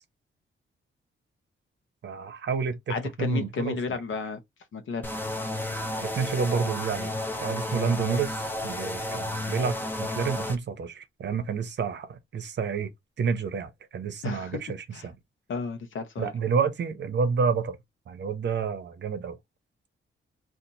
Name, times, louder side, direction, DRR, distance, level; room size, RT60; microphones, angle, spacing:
voice 1, 2.0-3.8 6.0-7.1 7.4-12.9 13.2-15.1 16.2-17.8 18.1-19.4, right 6 dB, 60° right, 0.7 m, -29 dB
voice 2, 2.9-4.4 4.7-5.1 14.2-14.6 14.9-15.1 15.5-16.3, left 5 dB, 70° left, 0.8 m, -32 dB
sound 1, 5.0-10.6, left 1 dB, 10° left, 0.5 m, -32 dB
2.8 x 2.5 x 4.0 m
wide cardioid pair, 160°, 21 cm